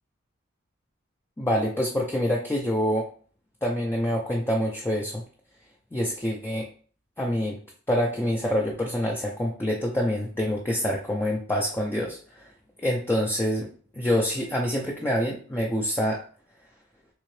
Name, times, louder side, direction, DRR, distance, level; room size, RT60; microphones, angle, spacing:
voice 1, 1.4-3.1 3.6-5.2 5.9-6.7 7.2-7.6 7.9-12.5 12.8-13.7 13.9-16.2, equal, 10° left, -1 dB, 0.4 m, -26 dB
3.6 x 2.8 x 3.1 m, 0.43 s
head